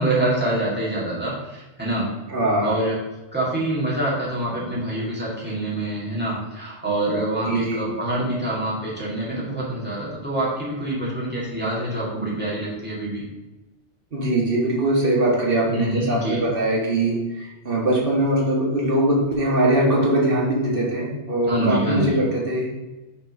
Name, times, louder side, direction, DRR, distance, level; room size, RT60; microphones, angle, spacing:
voice 1, 0.0-2.1 2.6-3.0 3.3-13.2 15.7-16.4 21.5-22.2, right 1 dB, 10° right, -8 dB, 2.2 m, -25 dB
voice 2, 2.3-2.7 7.5-7.8 14.1-22.7, right 1 dB, 50° right, -3 dB, 1.8 m, -21 dB
5.8 x 4.3 x 5.3 m, 1.0 s
omnidirectional pair, 1.2 m